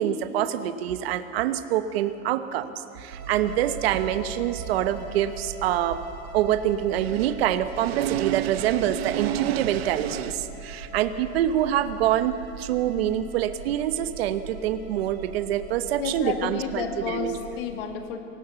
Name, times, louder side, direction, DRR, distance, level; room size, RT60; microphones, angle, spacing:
voice 1, 0.0-6.0 6.3-17.3, right 11 dB, 50° right, 10 dB, 1.0 m, -25 dB
sound 1, 3.1-17.6, right 4 dB, 80° right, 4.2 m, -41 dB
voice 2, 16.0-18.2, left 7 dB, 45° left, 5 dB, 2.1 m, -31 dB
25.0 x 19.0 x 7.0 m, 2.6 s
supercardioid pair, 175°, 40 cm